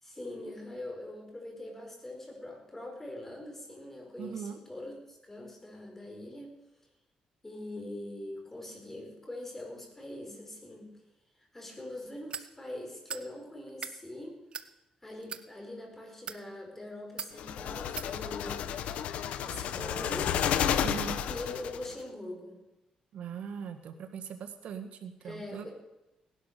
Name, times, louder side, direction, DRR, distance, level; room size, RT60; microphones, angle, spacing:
voice 1, 0.0-6.5 7.4-10.9 11.5-14.4 15.0-18.6 19.5-20.3 21.3-22.6 25.2-25.7, left 1 dB, 15° left, 2 dB, 5.0 m, -43 dB
voice 2, 4.2-4.6 20.8-21.2 23.1-25.7, right 7 dB, 75° right, 7 dB, 1.7 m, -40 dB
sound 1, 12.3-12.5 13.1-13.3 13.7-14.0 14.5-14.7 15.2-15.4 16.1-16.4 17.2-17.3 18.0-18.1, right 6 dB, 50° right, 1.0 m, -39 dB
sound 2, 17.4-21.9, left 9 dB, 90° left, 0.9 m, -31 dB
18.0 x 12.0 x 6.8 m, 0.95 s
cardioid pair, 115°, 2 cm